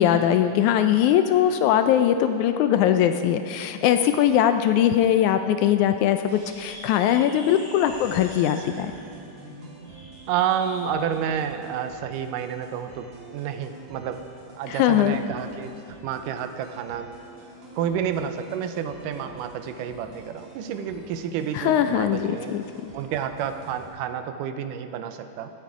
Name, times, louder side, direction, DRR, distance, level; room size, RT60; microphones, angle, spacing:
voice 1, 0.0-8.9 14.7-15.2 21.5-22.9, left 10 dB, 80° left, 8 dB, 1.8 m, -21 dB
sound 1, 6.2-10.9, right 1 dB, 20° left, 3.8 m, -44 dB
sound 2, 7.9-23.9, right 2 dB, 50° right, 3.8 m, -46 dB
voice 2, 10.3-14.3 14.5-15.8 16.0-17.1 17.8-22.5 22.9-25.5, right 8 dB, 85° right, 9 dB, 2.3 m, -30 dB
16.0 x 13.0 x 4.8 m, 2.7 s
omnidirectional pair, 3.7 m